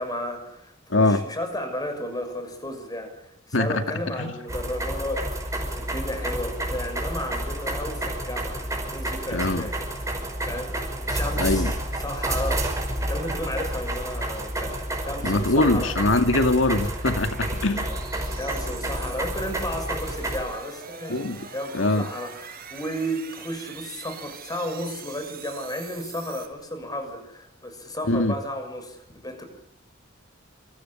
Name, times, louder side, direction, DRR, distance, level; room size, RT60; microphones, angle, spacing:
voice 1, 0.0-9.8 10.5-10.7 11.0-11.7 12.0-12.7 13.0-15.9 17.7-17.9 18.3-29.4, left 1 dB, 20° left, 6.4 m, -33 dB
voice 2, 0.9-1.3 3.5-4.3 9.3-9.7 11.4-11.7 15.2-17.9 21.1-21.5 21.7-22.1 28.1-28.3, left 2 dB, 75° left, 2.2 m, -23 dB
sound 1, 4.5-20.4, right 1 dB, 15° right, 5.6 m, -30 dB
sound 2, 14.0-26.5, right 6 dB, 50° right, 5.3 m, -44 dB
27.0 x 26.0 x 7.4 m
head